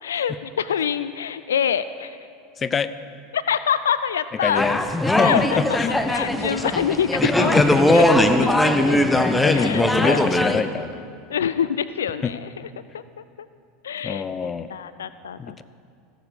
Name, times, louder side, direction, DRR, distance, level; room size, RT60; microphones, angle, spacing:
voice 1, 0.0-2.2 3.3-4.6 5.2-5.6 5.9-8.1 8.4-8.6 8.9-9.0 9.5-10.3 11.3-12.5 12.9-13.5 13.8-14.3 14.7-15.6, left 8 dB, 80° left, 14 dB, 0.3 m, -26 dB
voice 2, 2.6-2.9 4.4-4.8 5.1-6.0 7.2-8.0 8.3-8.5 8.9-11.0 12.2-12.3 14.0-14.7 15.4-15.6, left 6 dB, 30° left, 14 dB, 0.5 m, -25 dB
sound 1, 4.6-10.6, left 1 dB, 10° left, 0.9 m, -20 dB
16.0 x 7.1 x 6.8 m, 2.3 s
hypercardioid pair, 85°, 0 cm